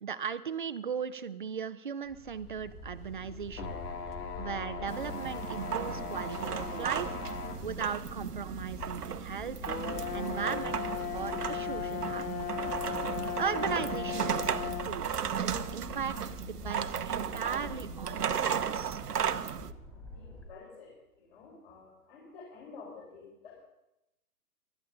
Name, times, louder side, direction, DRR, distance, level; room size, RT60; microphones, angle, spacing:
voice 1, 0.0-3.7 4.4-7.1 7.6-9.6 10.1-10.8 11.1-12.5 13.4-15.1 15.4-19.0, right 7 dB, 35° right, 13 dB, 0.5 m, -37 dB
sound 1, 2.0-20.5, left 1 dB, 5° left, 2.4 m, -45 dB
sound 2, 3.6-7.7 8.3-8.4 9.7-14.9, left 7 dB, 75° left, 1.6 m, -37 dB
sound 3, 4.9-19.7, right 8 dB, 85° right, 0.8 m, -35 dB
voice 2, 20.1-20.9 21.2-23.6, left 4 dB, 40° left, -4 dB, 4.3 m, -50 dB
20.0 x 13.0 x 3.8 m, 0.91 s
figure-of-eight pair, 140°, 46 cm